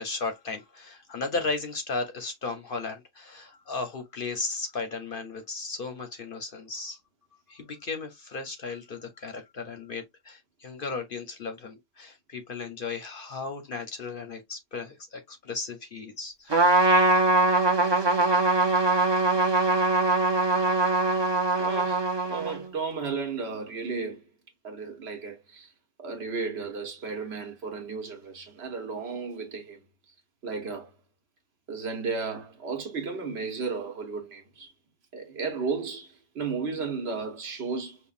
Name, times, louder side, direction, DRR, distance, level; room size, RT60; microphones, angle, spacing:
voice 1, 0.0-7.0 7.5-16.8, left 4 dB, 55° left, 0.7 m, -35 dB
Trumpet, 16.5-22.7, right 2 dB, 30° right, 0.5 m, -22 dB
voice 2, 21.6-22.0 22.3-24.2 24.6-25.7 26.0-29.8 30.4-30.9 31.7-34.7 35.1-38.0, right 4 dB, 60° right, 1.2 m, -34 dB
5.4 x 2.2 x 2.4 m
omnidirectional pair, 1.3 m